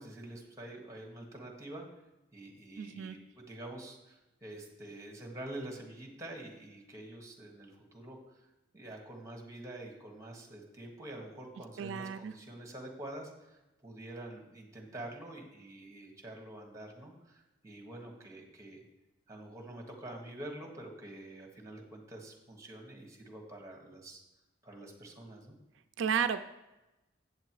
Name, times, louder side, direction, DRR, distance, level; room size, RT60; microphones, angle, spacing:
voice 1, 0.0-1.9 2.3-8.2 8.7-18.8 19.3-24.2 24.6-25.5, right 1 dB, 15° right, 1 dB, 1.5 m, -47 dB
voice 2, 2.8-3.1 11.8-12.3 26.0-26.4, right 7 dB, 80° right, 9 dB, 0.4 m, -32 dB
8.2 x 6.7 x 4.7 m, 1.0 s
head